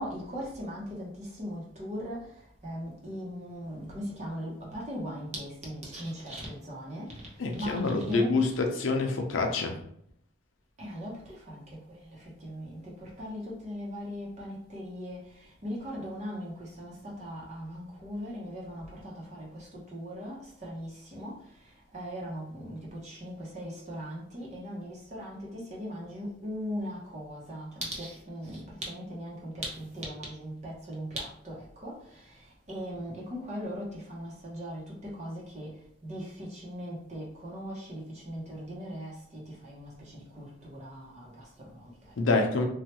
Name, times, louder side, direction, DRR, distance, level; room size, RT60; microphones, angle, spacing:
voice 1, 0.0-8.5 10.8-42.4, equal, 35° right, -4 dB, 0.8 m, -39 dB
voice 2, 7.4-9.8 42.2-42.6, left 3 dB, 85° left, 3 dB, 0.6 m, -26 dB
3.2 x 2.3 x 2.9 m, 0.69 s
head